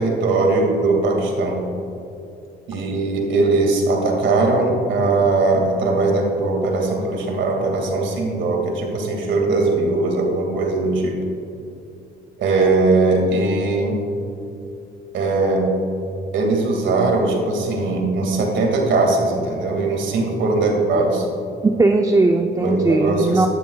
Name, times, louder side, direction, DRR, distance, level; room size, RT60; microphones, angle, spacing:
voice 1, 0.0-1.6 2.7-11.2 12.4-14.0 15.1-15.6 16.3-21.3 22.6-23.5, right 3 dB, 70° right, 1 dB, 2.1 m, -20 dB
voice 2, 21.6-23.5, right 2 dB, 15° right, 4 dB, 0.5 m, -18 dB
12.0 x 11.5 x 2.3 m, 2.7 s
cardioid pair, 90°, 20 cm